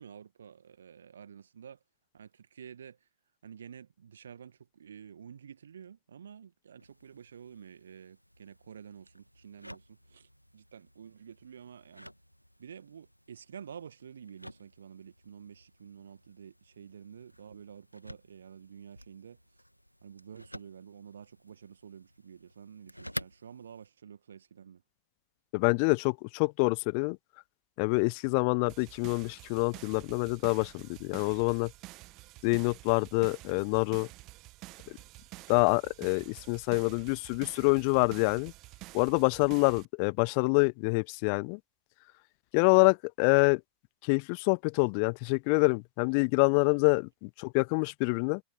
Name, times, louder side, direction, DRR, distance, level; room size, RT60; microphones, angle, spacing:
voice 1, 0.0-1.8 2.1-3.1 3.4-12.1 12.6-19.4 20.0-24.8, right 7 dB, 70° right, 1.8 m, -50 dB
sound 1, 6.8-23.9, equal, 90° left, 2.2 m, -51 dB
voice 2, 25.5-27.2 27.8-31.7 32.4-34.1 35.5-38.5 38.9-41.6 42.5-43.6 44.0-48.4, left 39 dB, 45° left, 0.4 m, -26 dB
sound 2, 28.7-39.9, right 21 dB, 40° right, 1.4 m, -49 dB
figure-of-eight pair, 90°, 0 cm